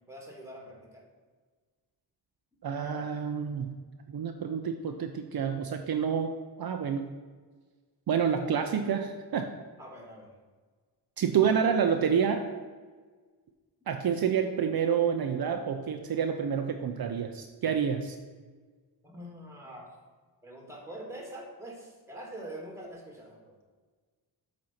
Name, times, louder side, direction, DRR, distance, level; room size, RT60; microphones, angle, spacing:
voice 1, 0.1-1.0 9.8-10.3 19.0-19.9 20.4-23.6, right 1 dB, 5° right, -1 dB, 2.0 m, -44 dB
voice 2, 2.6-3.7 4.1-6.3 6.6-7.1 8.1-9.5 11.2-12.4 13.9-18.2, right 7 dB, 60° right, 5 dB, 0.6 m, -28 dB
7.8 x 4.2 x 5.8 m, 1.5 s
wide cardioid pair, 100°, 42 cm